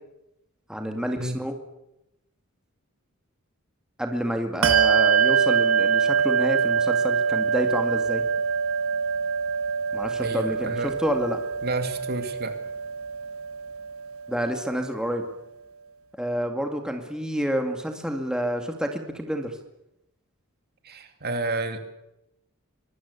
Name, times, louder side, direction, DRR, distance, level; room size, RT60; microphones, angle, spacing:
voice 1, 0.7-1.5 4.0-8.2 9.9-11.4 14.3-15.2 16.2-19.6, equal, 5° right, 3 dB, 2.2 m, -29 dB
Bell, 4.6-14.6, right 6 dB, 80° right, 1.3 m, -24 dB
voice 2, 10.2-11.0 11.6-12.6 20.8-21.8, right 2 dB, 50° right, 6 dB, 2.6 m, -30 dB
24.5 x 19.5 x 8.4 m, 0.88 s
head